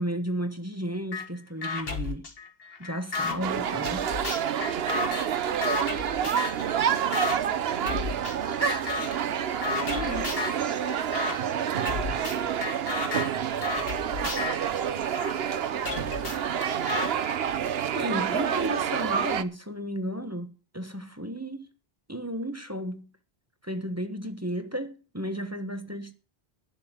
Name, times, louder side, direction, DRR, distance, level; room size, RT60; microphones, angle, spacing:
voice 1, 0.0-2.3 2.8-4.1 9.9-10.3 17.9-21.7 22.1-23.1 23.6-26.1, equal, 15° right, 1.2 m, -33 dB
sound 1, 1.1-1.3 1.6-3.4 3.9-6.7 7.1-7.4 7.9-8.4 8.6-9.2 9.6-10.6 11.1-11.4 11.9-15.3 15.9-17.1, left 4 dB, 65° left, 2.0 m, -33 dB
sound 2, 3.4-19.4, right 9 dB, 70° right, 1.0 m, -28 dB
voice 2, 4.6-5.3 5.9-12.4 13.7-16.8, right 1 dB, 45° right, 4.1 m, -48 dB
11.5 x 7.1 x 8.0 m
omnidirectional pair, 1.1 m